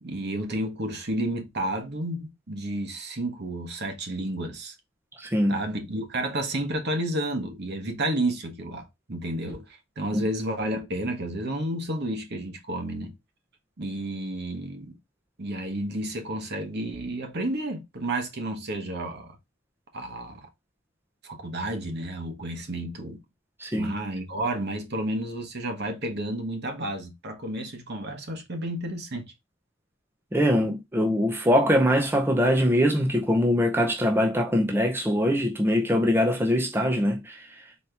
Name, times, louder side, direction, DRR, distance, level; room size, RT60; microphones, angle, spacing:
voice 1, 0.0-4.7 5.5-13.1 13.8-15.0 15.4-19.4 19.9-20.5 21.2-23.2 23.8-29.3, right 1 dB, 55° right, 1.1 m, -31 dB
voice 2, 5.2-5.5 10.1-10.3 23.6-23.9 30.3-37.5, equal, 10° right, 0.6 m, -23 dB
4.2 x 2.9 x 3.3 m
head